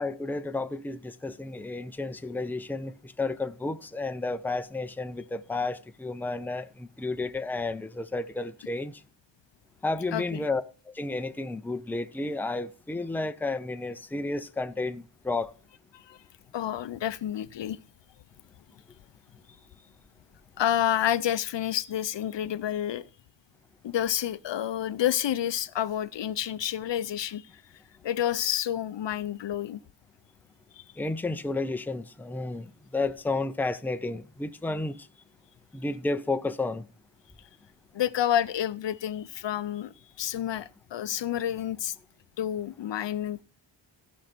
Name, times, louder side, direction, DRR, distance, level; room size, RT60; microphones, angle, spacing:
voice 1, 0.0-8.9 9.8-10.6 10.9-15.5 31.0-32.6 32.9-35.0 35.7-36.8, left 3 dB, 5° left, 0.5 m, -32 dB
voice 2, 10.1-10.4 15.9-16.2 16.5-17.8 20.6-23.0 23.8-27.4 28.0-29.8 30.8-30.9 37.9-41.9 42.4-43.4, left 11 dB, 70° left, 0.6 m, -29 dB
15.5 x 5.3 x 6.0 m
wide cardioid pair, 125°, 45 cm